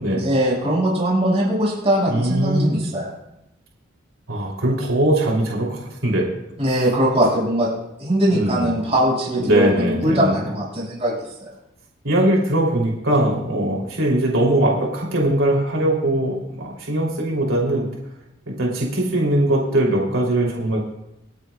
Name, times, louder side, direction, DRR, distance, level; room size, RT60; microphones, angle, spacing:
voice 1, 0.1-3.1 6.6-7.7 8.0-11.5, right 1 dB, 30° right, -4 dB, 5.7 m, -21 dB
voice 2, 2.1-2.8 4.3-6.2 8.3-8.7 9.4-10.5 12.0-17.9 18.5-20.8, right 1 dB, 90° right, -2 dB, 3.0 m, -21 dB
26.5 x 9.3 x 2.3 m, 0.87 s
head